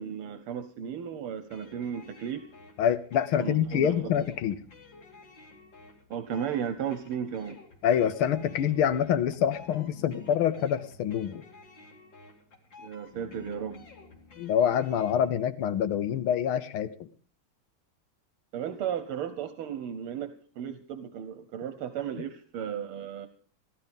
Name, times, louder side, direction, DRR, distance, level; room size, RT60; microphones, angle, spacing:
voice 1, 0.0-2.5 3.4-3.9 6.1-7.6 12.8-13.9 18.5-23.3, right 8 dB, 80° right, 10 dB, 1.8 m, -35 dB
sound 1, 1.5-15.3, left 3 dB, 60° left, 3.1 m, -52 dB
voice 2, 2.8-4.6 7.8-11.4 14.4-17.1, left 9 dB, 80° left, 13 dB, 1.7 m, -26 dB
16.0 x 12.0 x 5.3 m, 0.41 s
omnidirectional pair, 2.3 m